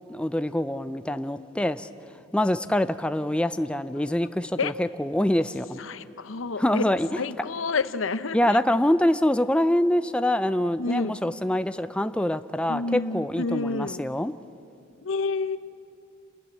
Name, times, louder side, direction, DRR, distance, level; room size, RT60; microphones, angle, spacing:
voice 1, 0.1-1.9 2.3-5.8 6.6-7.1 8.3-14.3, left 1 dB, 5° left, 11 dB, 0.5 m, -25 dB
voice 2, 5.8-6.8 7.2-8.6 10.8-11.2 12.7-14.0 15.0-15.6, left 4 dB, 80° left, 14 dB, 0.8 m, -29 dB
28.5 x 13.5 x 9.5 m, 2.4 s
head